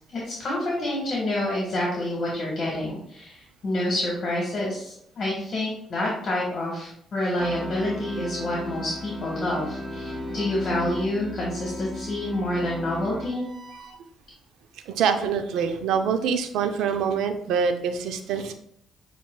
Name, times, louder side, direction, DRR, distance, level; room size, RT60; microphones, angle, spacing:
voice 1, 0.1-13.5, left 1 dB, 50° left, -4 dB, 1.4 m, -28 dB
sound 1, 7.4-13.9, left 1 dB, 10° right, 1.6 m, -36 dB
voice 2, 14.9-18.5, right 6 dB, 85° right, 8 dB, 0.5 m, -25 dB
7.3 x 2.9 x 2.3 m, 0.69 s
cardioid pair, 90°, 0 cm